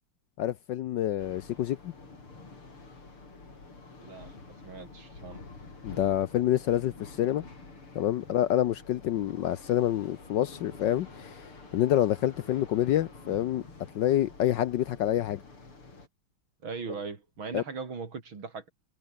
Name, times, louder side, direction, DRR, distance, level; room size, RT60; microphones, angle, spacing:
voice 1, 0.4-1.9 5.8-7.4 7.9-13.6 13.9-15.4 17.5-17.6, left 12 dB, 70° left, 1.2 m, -27 dB
sound 1, 1.2-16.1, left 3 dB, 85° left, 6.4 m, -48 dB
voice 2, 4.0-4.3 4.6-5.4 16.6-18.7, right 4 dB, 65° right, 4.1 m, -39 dB
omnidirectional pair, 2.4 m